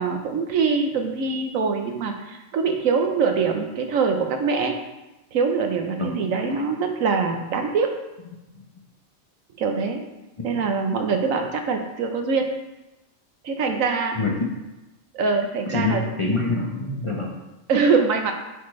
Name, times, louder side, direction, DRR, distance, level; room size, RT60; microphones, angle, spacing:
voice 1, 0.0-4.7 5.3-7.9 9.6-10.0 10.4-12.4 13.4-14.2 15.1-16.0 17.7-18.3, right 5 dB, 75° right, 4 dB, 1.1 m, -23 dB
voice 2, 5.9-6.6 8.5-8.6 14.1-14.5 15.7-17.3, left 3 dB, 30° left, -3 dB, 0.7 m, -26 dB
8.0 x 4.3 x 3.2 m, 1.0 s
omnidirectional pair, 1.4 m